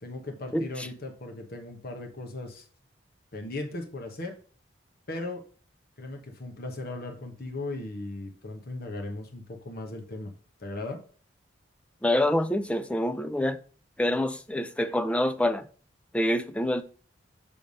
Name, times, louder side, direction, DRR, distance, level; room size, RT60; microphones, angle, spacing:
voice 1, 0.0-2.6 3.3-4.3 5.1-5.4 6.0-10.3 10.6-11.0, left 2 dB, 50° left, 1.0 m, -37 dB
voice 2, 0.5-0.9 12.0-13.6 14.0-15.7 16.1-16.8, left 1 dB, 5° left, 0.3 m, -26 dB
7.0 x 3.3 x 5.2 m
head